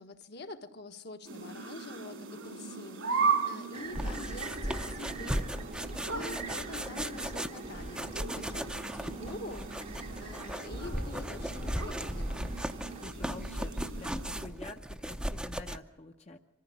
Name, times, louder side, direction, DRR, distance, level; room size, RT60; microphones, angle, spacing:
voice 1, 0.0-12.5, left 2 dB, 55° left, 6 dB, 1.3 m, -46 dB
sound 1, 1.2-14.5, right 5 dB, 85° right, 3.2 m, -38 dB
sound 2, 3.7-13.1, right 4 dB, 35° right, 0.8 m, -47 dB
sound 3, 3.9-15.8, equal, 5° right, 0.6 m, -37 dB
voice 2, 13.0-16.4, left 2 dB, 35° left, 4 dB, 0.8 m, -48 dB
25.0 x 14.5 x 8.5 m, 1.1 s
head